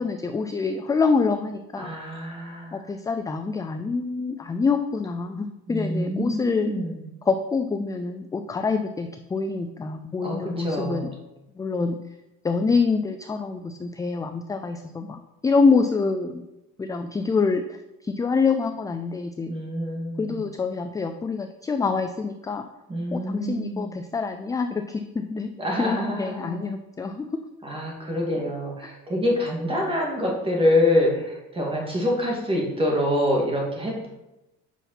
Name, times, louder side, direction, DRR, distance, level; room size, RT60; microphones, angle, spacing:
voice 1, 0.0-1.9 2.7-6.7 7.3-11.1 11.6-12.0 12.4-16.4 16.8-19.5 20.2-22.6 23.1-25.5 25.8-27.4 28.8-28.9, left 4 dB, 10° left, 7 dB, 0.3 m, -26 dB
voice 2, 1.7-2.8 5.7-7.1 10.2-11.1 19.5-20.4 22.9-23.9 25.6-26.7 27.6-34.1, left 1 dB, 15° right, -2 dB, 2.5 m, -26 dB
8.3 x 5.6 x 5.9 m, 0.96 s
cardioid pair, 135°, 32 cm